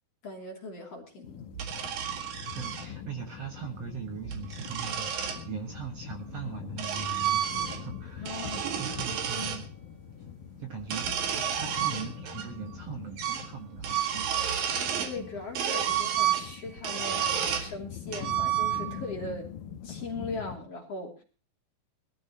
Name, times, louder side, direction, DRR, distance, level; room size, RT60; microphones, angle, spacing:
voice 1, 0.2-1.5 8.2-9.0 15.0-19.5 19.8-21.2, left 2 dB, 45° left, 1 dB, 3.7 m, -39 dB
sound 1, 1.2-20.6, left 9 dB, 75° left, 2.6 m, -43 dB
sound 2, 1.5-2.9 4.1-5.4 6.3-8.0 8.2-9.6 10.8-12.5 12.7-12.8 13.2-13.5 13.8-15.2 15.6-17.7 18.1-19.1, right 9 dB, 80° right, 3.7 m, -31 dB
voice 2, 2.5-8.4 8.8-9.8 10.6-11.1 11.5-14.3, right 6 dB, 55° right, 4 dB, 2.4 m, -40 dB
22.0 x 14.0 x 2.9 m, 0.35 s
omnidirectional pair, 4.0 m